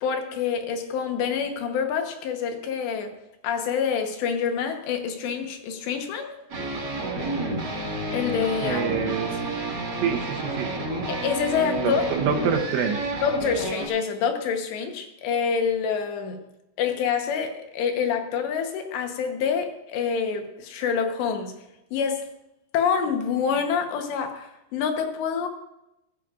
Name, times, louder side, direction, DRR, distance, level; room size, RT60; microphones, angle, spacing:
voice 1, 0.0-3.1 3.4-6.3 8.1-8.9 11.1-12.0 13.2-16.4 16.8-21.5 21.9-22.2 22.7-25.5, left 6 dB, 80° left, 5 dB, 3.3 m, -26 dB
sound 1, 6.5-13.9, right 1 dB, 50° right, 1.2 m, -30 dB
voice 2, 8.6-9.3 10.0-10.7 11.8-13.1, right 7 dB, 80° right, 3 dB, 3.3 m, -26 dB
16.0 x 15.0 x 2.5 m, 0.89 s
omnidirectional pair, 5.0 m